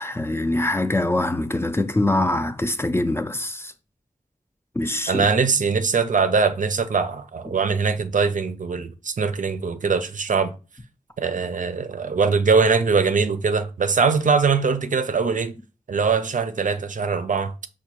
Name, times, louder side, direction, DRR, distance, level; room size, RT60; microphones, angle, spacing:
voice 1, 0.0-3.7 4.7-5.3, left 1 dB, 15° left, 0.3 m, -23 dB
voice 2, 5.1-10.5 11.2-15.5 15.9-17.5, right 5 dB, 70° right, 0.4 m, -22 dB
5.3 x 2.2 x 2.9 m
wide cardioid pair, 65°, 14 cm